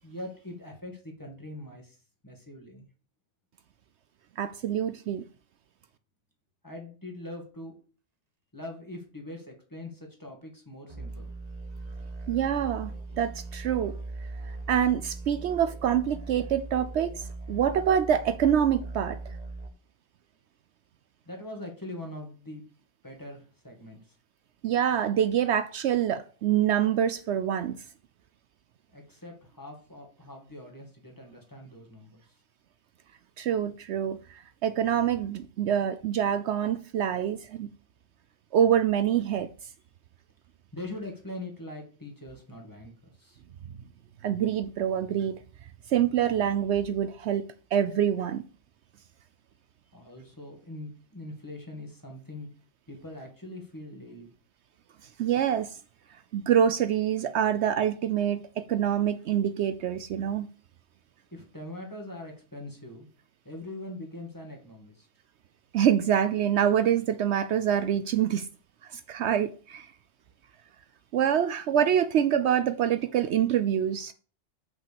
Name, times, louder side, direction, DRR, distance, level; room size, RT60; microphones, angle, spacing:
voice 1, 0.0-2.0 2.2-2.9 6.6-7.8 8.5-11.3 21.3-22.7 23.0-24.1 28.9-32.2 40.7-42.9 43.2-43.4 49.9-52.5 52.9-54.3 61.3-63.1 63.4-65.1, left 1 dB, 15° left, 2.1 m, -42 dB
voice 2, 4.4-5.2 12.3-13.9 14.5-19.2 24.6-27.8 33.4-37.7 38.5-39.5 44.2-45.4 45.9-47.4 47.7-48.4 55.2-55.8 56.3-60.5 65.7-68.5 68.9-69.9 71.1-74.1, right 9 dB, 70° right, 0.8 m, -26 dB
sound 1, 10.9-19.7, right 3 dB, 35° right, 1.1 m, -39 dB
5.9 x 5.6 x 7.0 m
omnidirectional pair, 1.2 m